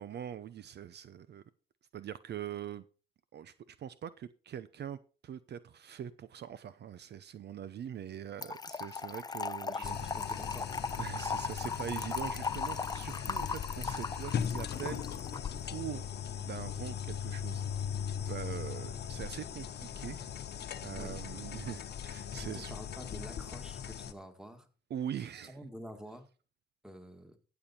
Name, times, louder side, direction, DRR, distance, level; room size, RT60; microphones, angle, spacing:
voice 1, 0.0-1.4 1.9-2.8 3.3-10.0 11.0-15.3 15.6-16.1 16.4-17.6 17.9-20.3 20.8-22.7 24.9-25.6, right 9 dB, 55° right, 0.7 m, -43 dB
Trickle dribble / Fill (with liquid), 8.4-15.5, left 4 dB, 20° left, 0.5 m, -38 dB
voice 2, 9.7-10.8 21.0-21.2 22.4-24.7 25.2-26.3 26.8-27.4, equal, 5° right, 2.0 m, -49 dB
sound 1, 9.8-24.1, left 8 dB, 55° left, 1.1 m, -39 dB
15.5 x 7.2 x 4.3 m
cardioid pair, 90°, 20 cm